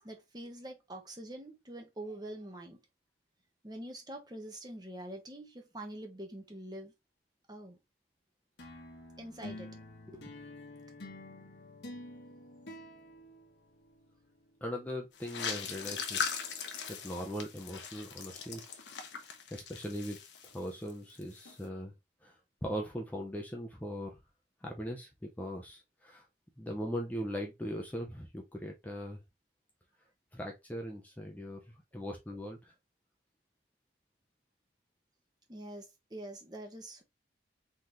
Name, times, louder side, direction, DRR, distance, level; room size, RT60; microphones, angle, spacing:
voice 1, 0.0-2.8 3.6-6.9 7.5-7.8 9.2-9.8 10.0-10.2 35.5-37.0, right 1 dB, 25° right, 1.1 m, -45 dB
sound 1, 8.6-14.2, left 1 dB, 70° left, 1.4 m, -48 dB
voice 2, 14.6-16.5 16.9-18.6 19.5-20.2 20.5-21.9 22.2-24.2 24.6-26.2 26.6-29.2 30.3-31.6 31.9-32.7, equal, 10° left, 0.8 m, -40 dB
sound 2, 15.2-20.9 21.2-21.6, left 6 dB, 90° left, 1.0 m, -40 dB
4.2 x 3.8 x 3.1 m
head